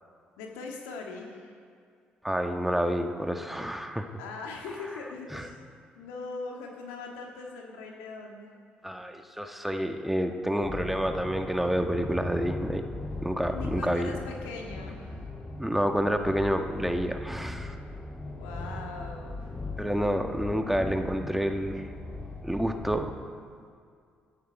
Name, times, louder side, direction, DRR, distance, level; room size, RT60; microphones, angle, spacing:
voice 1, 0.4-1.5 4.2-5.6 6.0-8.5 13.5-15.2 18.4-19.5, left 3 dB, 80° left, 1 dB, 1.9 m, -40 dB
voice 2, 2.2-4.1 5.3-5.4 8.8-12.8 13.2-14.1 15.6-17.7 19.8-21.8 22.4-23.2, equal, 5° right, 5 dB, 1.4 m, -29 dB
sound 1, 10.6-23.0, left 2 dB, 25° left, 2.4 m, -39 dB
17.5 x 12.0 x 4.8 m, 2.2 s
hypercardioid pair, 50°, 4 cm